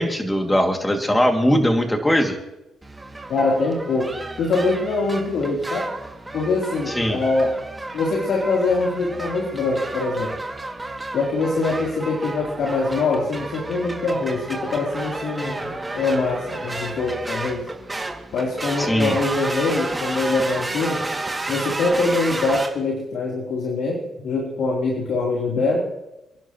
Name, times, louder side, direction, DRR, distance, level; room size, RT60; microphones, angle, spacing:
voice 1, 0.0-2.4 6.9-7.2 18.8-19.1, equal, 10° left, 3 dB, 2.5 m, -20 dB
sound 1, 2.8-22.7, right 2 dB, 15° right, 2.4 m, -32 dB
voice 2, 3.3-4.1 4.4-5.9 6.3-7.5 7.9-10.3 11.1-15.6 15.9-17.7 18.3-21.0 21.5-25.8, left 3 dB, 70° left, -4 dB, 3.6 m, -23 dB
28.5 x 11.0 x 3.1 m, 0.90 s
cardioid pair, 90°, 0 cm